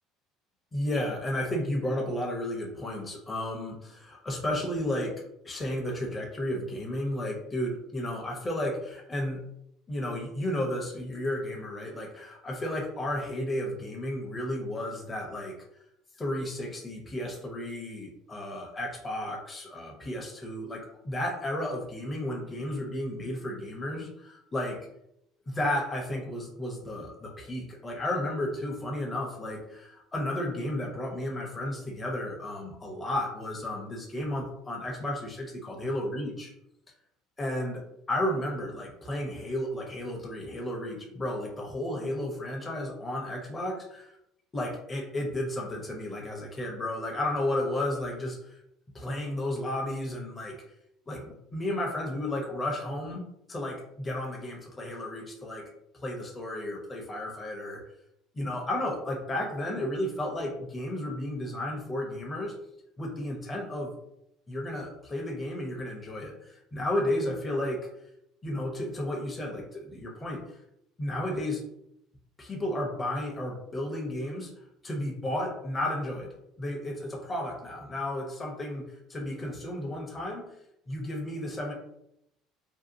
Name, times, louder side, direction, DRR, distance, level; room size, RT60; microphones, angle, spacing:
voice 1, 0.7-5.1 5.4-9.4 9.9-15.5 16.2-24.8 25.5-36.5 37.4-37.8 38.1-44.2 44.5-48.6 48.9-50.6 51.1-53.2 53.5-55.6 55.9-57.8 58.3-62.5 63.0-63.9 64.5-67.8 68.4-70.6 71.0-71.6 72.4-74.5 74.8-76.3 76.6-78.8 79.1-80.4 80.9-81.7, left 1 dB, 25° left, 0 dB, 0.6 m, -33 dB
2.6 x 2.2 x 2.6 m, 0.79 s
supercardioid pair, 90°, 0 cm